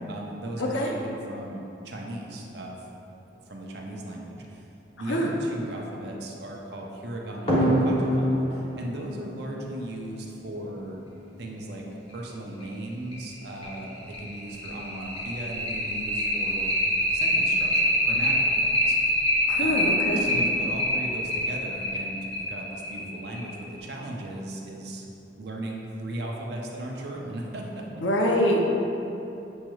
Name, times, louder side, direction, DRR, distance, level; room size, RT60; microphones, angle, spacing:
voice 1, 0.1-2.9 3.5-4.6 5.0-11.0 11.4-11.8 12.1-16.7 17.1-19.1 19.6-25.1 25.4-28.0, right 1 dB, 60° right, -1 dB, 0.5 m, -37 dB
voice 2, 0.6-0.9 5.1-5.3 19.5-20.2 28.0-28.7, equal, 85° left, -1 dB, 0.6 m, -24 dB
sound 1, 7.5-10.6 12.1-12.2 12.6-12.7 13.1-13.2 13.6-23.7, equal, 30° left, 1.0 m, -25 dB
7.1 x 3.0 x 2.3 m, 2.8 s
head